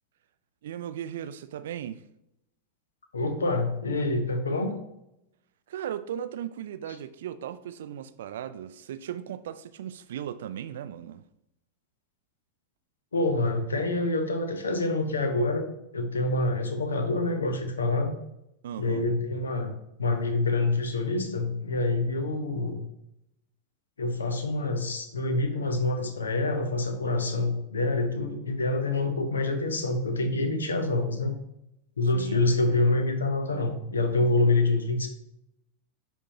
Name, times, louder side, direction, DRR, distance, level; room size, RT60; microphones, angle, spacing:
voice 1, 0.6-2.0 5.7-11.2 18.6-19.1 32.1-32.4, right 10 dB, 60° right, 0.4 m, -37 dB
voice 2, 3.1-4.8 13.1-18.1 18.8-19.7 20.0-22.8 24.0-31.4 32.0-35.1, left 2 dB, 70° left, 0.8 m, -26 dB
9.6 x 3.6 x 2.9 m
figure-of-eight pair, 90°, 0 cm